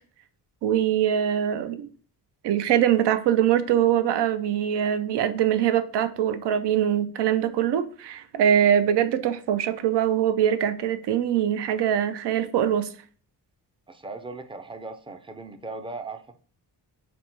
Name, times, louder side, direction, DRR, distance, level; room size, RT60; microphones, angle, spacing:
voice 1, 0.6-1.9 2.4-12.9, right 10 dB, 80° right, 0.5 m, -23 dB
voice 2, 13.9-16.3, right 3 dB, 15° right, 0.4 m, -38 dB
4.1 x 2.2 x 4.2 m
wide cardioid pair, 115°, 41 cm